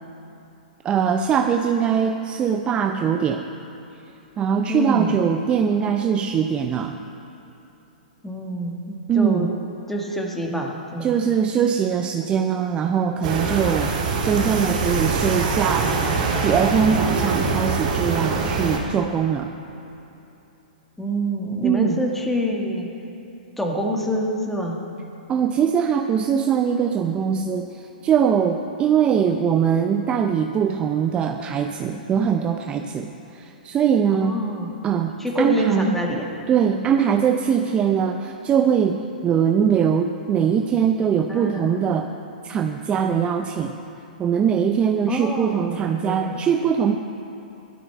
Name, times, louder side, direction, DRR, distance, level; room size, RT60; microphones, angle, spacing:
voice 1, 0.8-3.5 4.4-7.0 9.1-9.5 11.0-13.9 14.2-15.9 16.4-19.5 21.6-22.0 25.3-34.4 34.8-36.0 36.5-42.1 42.4-43.8 44.2-47.0, right 7 dB, 20° right, 5 dB, 0.5 m, -21 dB
voice 2, 4.7-5.2 8.2-9.5 9.9-11.1 21.0-22.9 23.6-24.8 34.1-34.7 35.2-36.3 41.3-41.8 45.1-46.4, equal, 5° left, 0 dB, 1.7 m, -26 dB
sound 1, 13.2-18.8, right 4 dB, 55° right, 3.2 m, -23 dB
15.5 x 12.0 x 4.6 m, 3.0 s
hypercardioid pair, 125°, 5 cm